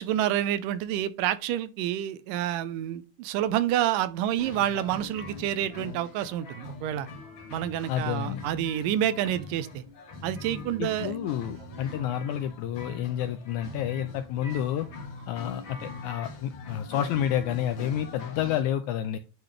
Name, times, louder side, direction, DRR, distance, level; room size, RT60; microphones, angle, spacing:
voice 1, 0.0-7.1 7.5-9.8 10.2-11.1, right 11 dB, 80° right, 2.2 m, -28 dB
sound 1, 4.4-18.6, left 4 dB, 45° left, 1.8 m, -42 dB
sound 2, 7.5-8.0 11.5-12.1 13.6-14.3 14.8-15.3, right 4 dB, 65° right, 1.8 m, -49 dB
voice 2, 7.9-8.4 10.8-14.9 15.3-19.2, left 10 dB, 80° left, 1.7 m, -29 dB
10.5 x 4.0 x 3.2 m
omnidirectional pair, 3.9 m